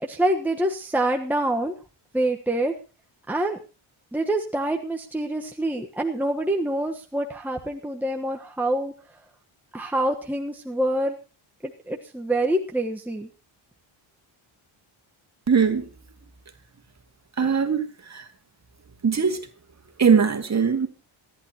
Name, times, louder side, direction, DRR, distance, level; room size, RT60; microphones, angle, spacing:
voice 1, 0.0-1.7 2.1-2.7 3.3-3.6 4.1-8.9 9.7-11.2 11.6-13.3, right 1 dB, 5° right, 1.2 m, -26 dB
voice 2, 15.5-15.9 17.4-18.3 19.0-19.5 20.0-20.9, right 6 dB, 35° right, 2.3 m, -21 dB
27.0 x 11.0 x 2.9 m
wide cardioid pair, 145°, 49 cm